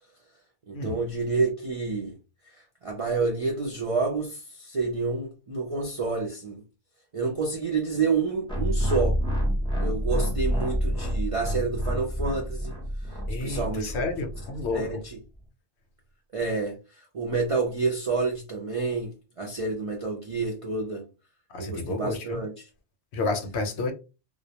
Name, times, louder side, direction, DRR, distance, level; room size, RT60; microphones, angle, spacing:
voice 1, 0.7-2.2 2.5-6.6 7.1-9.2 9.8-12.7 13.0-13.9 14.7-15.2 16.3-21.1 21.6-22.7, right 4 dB, 55° right, 0.4 m, -29 dB
sound 1, 8.5-14.9, equal, 5° left, 0.5 m, -28 dB
voice 2, 13.3-15.0 21.5-22.4 23.1-23.9, left 3 dB, 70° left, 0.8 m, -30 dB
2.2 x 2.1 x 2.8 m
omnidirectional pair, 1.2 m